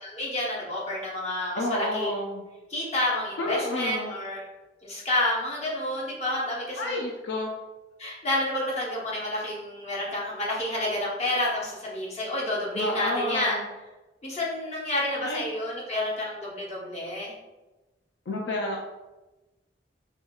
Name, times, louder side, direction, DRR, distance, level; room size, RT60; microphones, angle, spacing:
voice 1, 0.0-2.1 2.7-4.4 4.8-7.1 8.0-13.6 14.2-17.3, left 1 dB, 40° left, -5 dB, 0.9 m, -29 dB
voice 2, 1.6-2.5 3.4-4.1 6.8-7.5 12.8-13.6 15.2-15.4 18.3-18.8, left 1 dB, 75° left, -1 dB, 0.4 m, -30 dB
4.4 x 2.2 x 2.3 m, 1.1 s
head